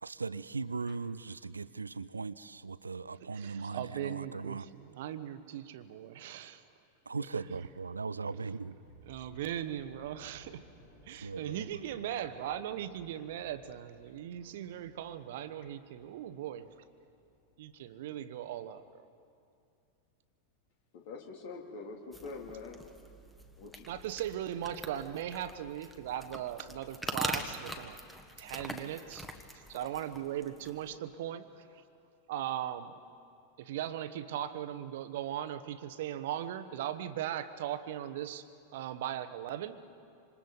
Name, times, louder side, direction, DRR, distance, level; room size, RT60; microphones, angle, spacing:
voice 1, 0.0-4.7 7.1-8.8 11.2-11.7, right 4 dB, 75° right, 17 dB, 0.5 m, -39 dB
voice 2, 3.2-6.6 7.3-7.4 9.0-10.7 11.1-16.8 17.6-19.0 23.9-28.0 28.4-31.7 32.3-32.9 33.6-38.4 38.7-39.9, right 11 dB, 55° right, 12 dB, 1.1 m, -39 dB
sound 1, 8.8-18.8 19.1-19.3, equal, 70° left, 7.7 m, -61 dB
voice 3, 20.9-22.8 23.6-23.9, left 4 dB, 50° left, 1 dB, 3.0 m, -44 dB
sound 2, 22.1-31.0, equal, 5° left, 1.6 m, -43 dB
27.0 x 26.5 x 4.1 m, 2.5 s
figure-of-eight pair, 90°, 0 cm